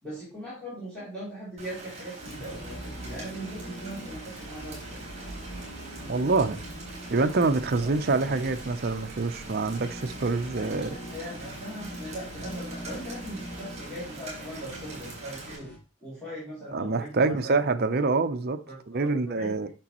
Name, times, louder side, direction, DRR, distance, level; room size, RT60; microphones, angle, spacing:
voice 1, 0.0-5.0 7.8-8.0 10.5-15.7 16.0-17.6 18.7-19.7, equal, 5° left, 2.9 m, -40 dB
Rain, 1.6-15.6, right 2 dB, 30° right, 3.5 m, -44 dB
sound 1, 2.2-15.8, equal, 50° left, 2.3 m, -42 dB
voice 2, 6.0-6.6 7.1-11.0 16.7-19.7, right 3 dB, 45° right, 0.6 m, -26 dB
8.8 x 6.1 x 2.9 m
head